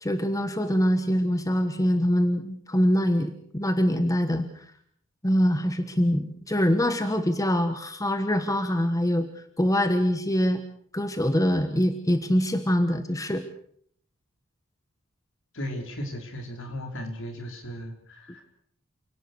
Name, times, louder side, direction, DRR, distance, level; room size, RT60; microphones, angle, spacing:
voice 1, 0.0-4.6 5.2-10.6 10.9-13.4, equal, 15° left, 9 dB, 1.4 m, -24 dB
voice 2, 15.5-18.4, equal, 65° left, 3 dB, 5.2 m, -36 dB
29.0 x 18.0 x 6.5 m, 0.63 s
head